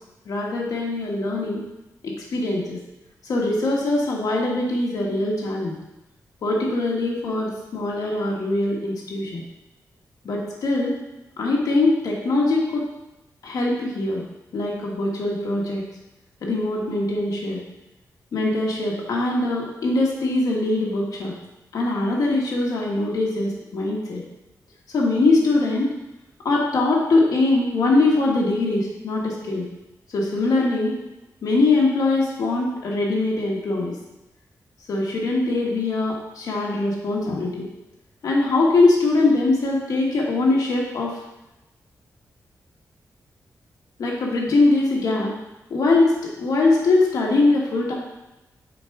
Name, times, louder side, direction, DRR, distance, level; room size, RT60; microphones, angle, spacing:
voice 1, 0.2-1.6 2.0-2.8 3.2-5.8 6.4-9.4 10.2-11.0 11.4-12.8 13.4-14.2 14.5-15.8 16.4-17.6 18.3-21.3 21.7-24.2 24.9-25.9 26.4-29.7 30.1-31.0 31.4-33.9 34.9-37.7 38.2-41.1 44.0-45.3 45.7-47.9, left 2 dB, 75° left, -3 dB, 1.3 m, -22 dB
7.7 x 3.5 x 4.7 m, 0.97 s
wide cardioid pair, 120°, 6 cm